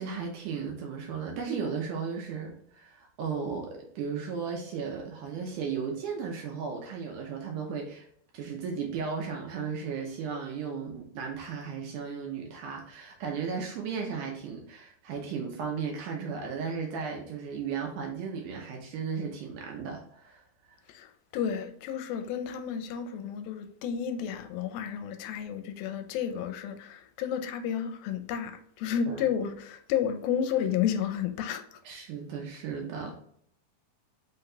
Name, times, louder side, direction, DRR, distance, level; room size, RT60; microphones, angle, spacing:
voice 1, 0.0-8.1 8.3-20.8 29.1-29.3 31.8-33.2, right 6 dB, 75° right, 2.0 m, -35 dB
voice 2, 21.3-31.6, left 8 dB, 85° left, 2.4 m, -31 dB
5.5 x 4.0 x 2.2 m
omnidirectional pair, 4.2 m